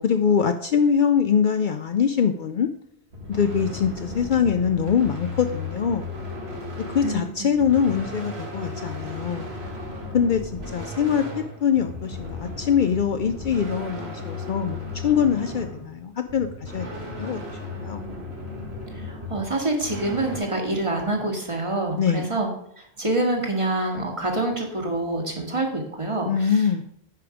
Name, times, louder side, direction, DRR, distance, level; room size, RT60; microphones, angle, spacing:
voice 1, 0.0-2.7 3.3-6.1 6.9-9.5 10.1-10.4 10.7-17.4 17.8-18.0 22.0-22.2 26.2-26.8, left 7 dB, 60° left, 8 dB, 0.6 m, -23 dB
sound 1, 3.1-20.4, left 2 dB, 85° right, 2.1 m, -35 dB
voice 2, 7.0-7.5 18.9-22.5 22.8-26.6, right 2 dB, 30° right, 1 dB, 1.6 m, -26 dB
9.2 x 5.2 x 4.9 m, 0.72 s
omnidirectional pair, 1.1 m